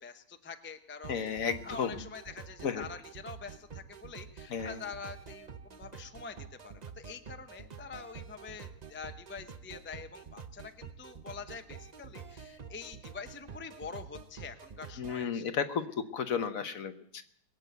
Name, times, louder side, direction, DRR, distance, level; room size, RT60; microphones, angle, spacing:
voice 1, 0.0-15.4, left 5 dB, 20° left, 7 dB, 0.3 m, -46 dB
sound 1, 1.0-15.2, right 6 dB, 60° right, 0.4 m, -48 dB
voice 2, 1.1-1.9 2.6-2.8 4.5-4.8 15.0-17.2, left 6 dB, 55° left, 9 dB, 1.2 m, -33 dB
21.5 x 7.9 x 8.0 m, 0.68 s
omnidirectional pair, 1.9 m